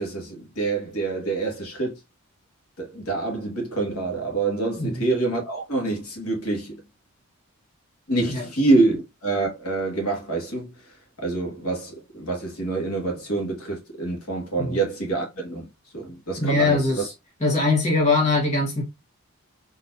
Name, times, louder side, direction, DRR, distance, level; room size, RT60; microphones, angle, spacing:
voice 1, 0.0-2.0 2.8-6.8 8.1-9.0 9.2-10.7 11.2-15.7 15.9-17.1, right 3 dB, 75° left, 1.8 m, -26 dB
voice 2, 16.4-17.1 17.4-18.8, left 3 dB, 30° left, 1.5 m, -22 dB
4.2 x 3.2 x 2.6 m
head